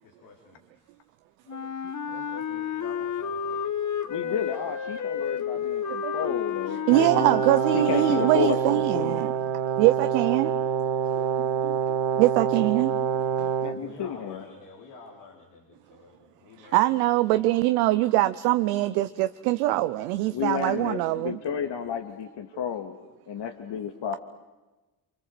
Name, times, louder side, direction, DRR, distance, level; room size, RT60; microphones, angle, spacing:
voice 1, 0.0-0.6 2.1-3.8 13.6-17.6, left 4 dB, 90° left, -1 dB, 4.2 m, -49 dB
Wind instrument woodwind instrument, 1.5-8.8, left 7 dB, 40° left, 1.8 m, -31 dB
voice 2, 4.1-7.4 7.7-9.3 13.6-14.4 20.3-23.0 23.3-24.2, left 8 dB, 60° left, 6 dB, 2.2 m, -31 dB
voice 3, 5.9-6.3 6.9-9.3 9.8-10.5 11.1-11.8 12.1-12.9 13.4-13.5 16.6-21.4, right 17 dB, 90° right, 11 dB, 0.8 m, -23 dB
Brass instrument, 6.9-13.8, right 8 dB, 65° right, 1.7 m, -26 dB
28.5 x 25.5 x 7.8 m, 1.1 s
hypercardioid pair, 50°, 47 cm